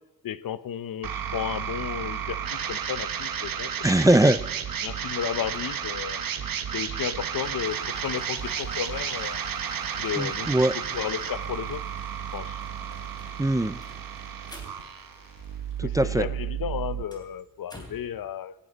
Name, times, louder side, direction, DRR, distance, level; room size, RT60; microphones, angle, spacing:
voice 1, 0.2-2.4 2.7-3.7 4.8-6.2 6.7-9.4 10.0-10.5 10.9-11.8 12.3-12.6 15.8-18.5, left 9 dB, 90° left, 16 dB, 0.8 m, -33 dB
sound 1, 1.0-17.0, right 8 dB, 85° right, 1.3 m, -32 dB
voice 2, 3.8-4.4 10.1-10.8 13.4-13.8 15.8-16.3, right 1 dB, 10° right, 15 dB, 0.4 m, -21 dB
Applause, 7.2-15.9, left 3 dB, 70° left, 3.9 m, -49 dB
sound 2, 12.4-16.0 16.2-18.2, left 1 dB, 10° left, 3.1 m, -51 dB
17.5 x 17.5 x 4.1 m, 1.1 s
wide cardioid pair, 160°, 33 cm